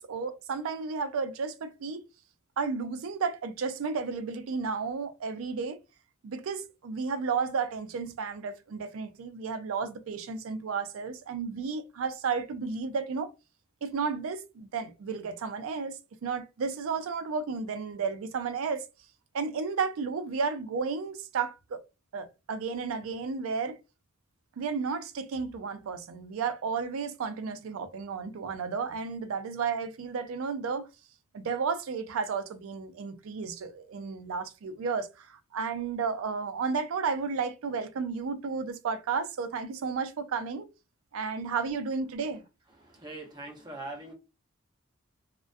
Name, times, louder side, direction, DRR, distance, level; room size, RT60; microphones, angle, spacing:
voice 1, 0.0-2.0 2.6-5.8 6.2-13.3 13.8-18.8 19.3-21.8 22.1-23.8 24.6-30.9 31.3-40.7 41.1-42.4, right 5 dB, 75° right, 0.4 m, -33 dB
voice 2, 42.8-44.1, right 2 dB, 20° right, 0.8 m, -42 dB
2.3 x 2.1 x 2.5 m
head